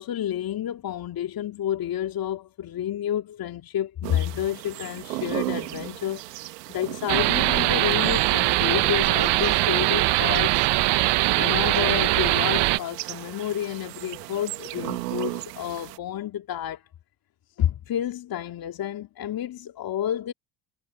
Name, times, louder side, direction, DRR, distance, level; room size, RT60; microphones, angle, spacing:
voice 1, 0.0-6.2 6.7-10.7 11.3-16.8 17.6-20.3, left 11 dB, 45° left, 2.5 m, -30 dB
sound 1, 4.0-16.0, right 18 dB, 80° right, 2.2 m, -37 dB
sound 2, 7.1-12.8, right 19 dB, 55° right, 1.3 m, -21 dB
hypercardioid pair, 65°, 48 cm